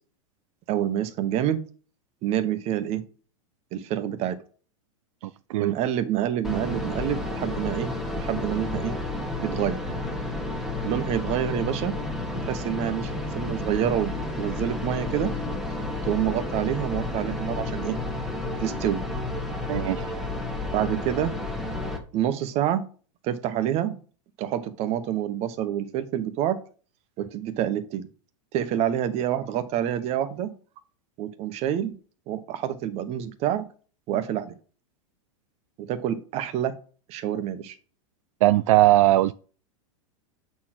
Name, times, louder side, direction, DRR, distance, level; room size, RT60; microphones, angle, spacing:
voice 1, 0.7-1.6 2.2-3.0 3.7-4.4 5.6-9.0 9.4-9.8 10.8-11.9 12.4-13.1 13.3-15.3 16.0-17.9 18.6-19.2 20.7-21.3 22.1-22.8 23.2-24.0 24.4-26.6 27.2-28.1 28.5-30.5 31.2-31.9 32.3-33.6 34.1-34.5 35.8-36.7 37.1-37.8, right 10 dB, 35° right, 1.1 m, -27 dB
voice 2, 5.2-5.8 19.7-20.1 38.4-39.3, right 16 dB, 65° right, 0.4 m, -20 dB
sound 1, 6.4-22.0, left 2 dB, ahead, 1.4 m, -31 dB
8.4 x 4.3 x 6.1 m
supercardioid pair, 140°, 18 cm